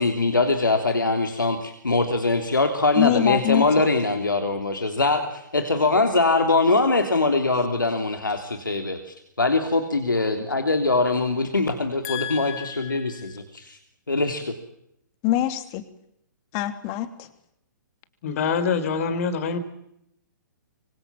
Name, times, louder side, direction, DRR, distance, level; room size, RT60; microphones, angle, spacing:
voice 1, 0.0-13.8 14.1-14.5, left 3 dB, 85° left, 6 dB, 3.2 m, -22 dB
voice 2, 2.9-3.9 12.0-13.3 15.2-15.8 16.5-17.3, left 13 dB, 30° left, 10 dB, 2.9 m, -26 dB
voice 3, 18.2-19.6, left 5 dB, 45° left, 13 dB, 4.2 m, -24 dB
25.5 x 25.5 x 7.4 m, 0.76 s
figure-of-eight pair, 125°, 10 cm